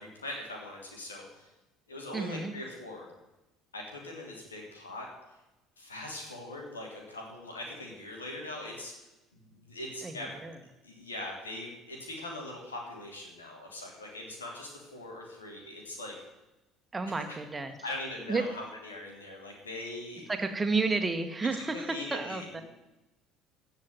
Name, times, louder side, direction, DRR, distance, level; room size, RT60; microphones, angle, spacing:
voice 1, 0.0-1.5 1.9-3.1 3.7-5.1 5.8-8.9 9.3-10.3 10.8-16.1 17.1-17.4 17.8-20.3 21.7-22.6, left 1 dB, 80° left, 0 dB, 3.2 m, -41 dB
voice 2, 2.1-2.5 10.0-10.6 16.9-17.8 18.3-18.5 20.3-22.6, right 3 dB, 20° right, 6 dB, 1.9 m, -31 dB
16.0 x 5.8 x 9.4 m, 1.0 s
figure-of-eight pair, 55°, 0 cm